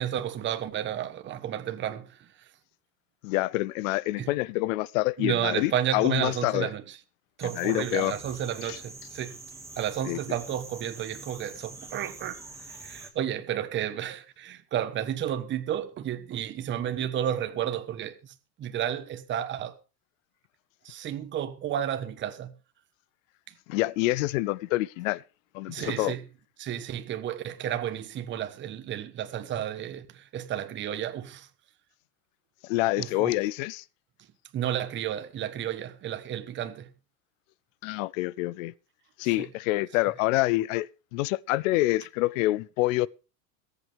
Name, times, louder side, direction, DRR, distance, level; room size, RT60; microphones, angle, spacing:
voice 1, 0.0-2.3 4.2-4.3 5.2-6.8 7.4-9.4 9.8-12.4 12.7-18.2 18.6-19.7 20.8-22.5 25.7-26.2 26.6-31.5 33.0-33.3 34.5-36.9 39.4-39.5, right 10 dB, 25° right, 1.2 m, -32 dB
voice 2, 3.2-6.7 7.5-8.2 8.6-8.8 10.0-10.2 23.7-25.2 25.5-26.1 32.6-33.8 37.8-38.7 39.2-43.1, left 19 dB, 55° left, 0.6 m, -27 dB
sound 1, 7.4-13.1, right 2 dB, 5° right, 2.0 m, -45 dB
22.5 x 8.3 x 3.5 m
supercardioid pair, 150°, 50 cm